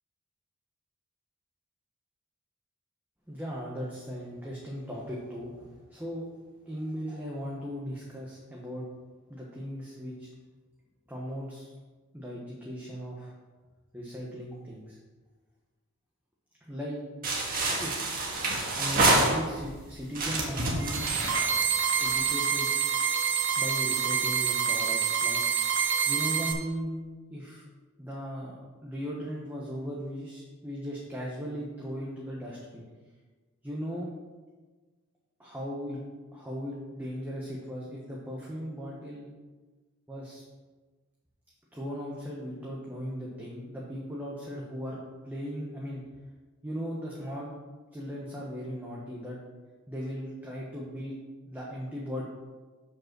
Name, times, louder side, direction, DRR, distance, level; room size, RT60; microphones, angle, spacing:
voice 1, 3.3-6.2 6.6-8.8 9.3-10.3 11.1-11.7 12.1-13.3 13.9-15.0 16.6-17.0 17.8-18.1 18.8-21.1 22.0-22.7 23.5-25.4 26.1-27.0 27.3-27.6 28.0-32.8 33.6-34.1 35.4-36.0 36.3-39.3 40.1-40.4 41.7-45.0 45.2-46.0 46.6-47.5 47.9-49.4 49.9-51.2 51.5-52.2, equal, 10° right, -4 dB, 1.1 m, -37 dB
sound 1, 17.2-19.7 20.1-22.4, right 2 dB, 40° right, 1.6 m, -27 dB
sound 2, 20.8-26.5, right 7 dB, 60° right, 1.1 m, -27 dB
7.1 x 5.3 x 6.0 m, 1.3 s
head